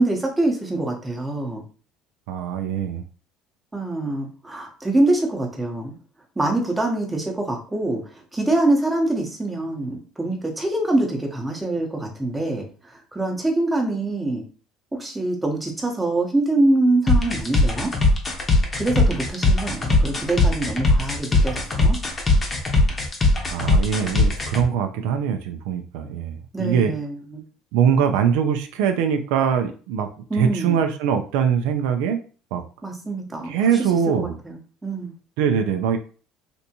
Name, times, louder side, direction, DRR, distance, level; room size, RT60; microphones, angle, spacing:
voice 1, 0.0-1.6 3.7-5.9 6.4-14.4 14.9-17.9 18.8-22.0 26.5-27.4 30.3-30.8 32.8-33.8 34.1-35.1, right 2 dB, 10° right, 1 dB, 0.8 m, -24 dB
voice 2, 2.3-3.0 23.5-26.9 27.7-30.1 30.4-32.2 32.5-32.6 33.5-34.4 35.4-36.0, right 7 dB, 85° right, 6 dB, 0.4 m, -22 dB
sound 1, 17.1-24.6, left 2 dB, 25° left, 0.8 m, -19 dB
3.4 x 2.7 x 2.8 m, 0.39 s
cardioid pair, 135°, 0 cm